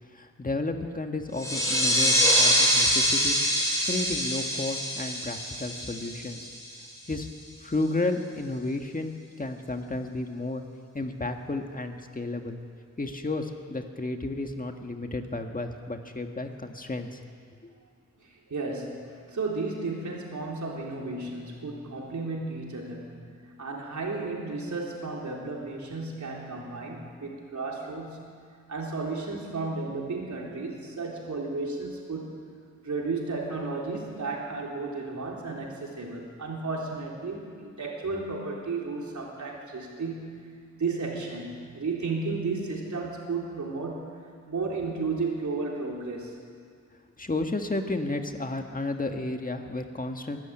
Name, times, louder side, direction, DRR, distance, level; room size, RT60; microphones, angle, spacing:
voice 1, 0.1-3.4 3.8-6.5 7.1-7.3 7.6-10.6 10.9-12.6 13.0-17.2 17.6-17.7 47.2-50.4, left 2 dB, 30° left, 5 dB, 1.6 m, -32 dB
sound 1, 1.4-6.7, equal, 10° left, 5.2 m, -24 dB
voice 2, 18.2-23.2 23.6-28.4 28.7-32.4 32.8-46.4, right 3 dB, 80° right, -2 dB, 3.9 m, -33 dB
22.5 x 13.0 x 8.9 m, 2.1 s
wide cardioid pair, 100°, 29 cm